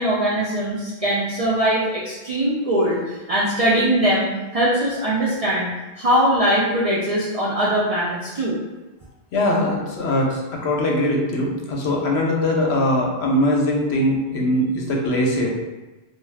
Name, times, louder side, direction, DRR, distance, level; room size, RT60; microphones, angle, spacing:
voice 1, 0.0-5.7 6.0-8.6 9.7-9.8, right 1 dB, 55° right, -7 dB, 0.4 m, -21 dB
voice 2, 9.3-15.5, left 1 dB, 75° left, -1 dB, 0.9 m, -21 dB
2.3 x 2.3 x 3.3 m, 1.1 s
omnidirectional pair, 1.1 m